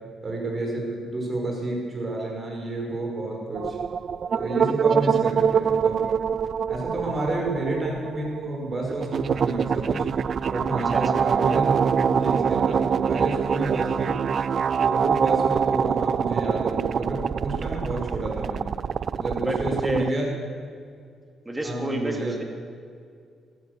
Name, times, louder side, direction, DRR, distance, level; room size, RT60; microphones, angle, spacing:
voice 1, 0.2-3.8 4.3-6.2 6.7-10.1 10.5-14.1 14.8-18.6 19.1-20.3 21.6-22.3, right 2 dB, 35° right, 0 dB, 5.4 m, -30 dB
sound 1, 3.5-20.1, right 7 dB, 50° right, 0.3 m, -24 dB
voice 2, 10.9-11.3 19.4-20.1 21.4-22.4, right 1 dB, 15° right, 4 dB, 2.4 m, -30 dB
15.0 x 14.0 x 6.8 m, 2.2 s
cardioid pair, 90°, 0 cm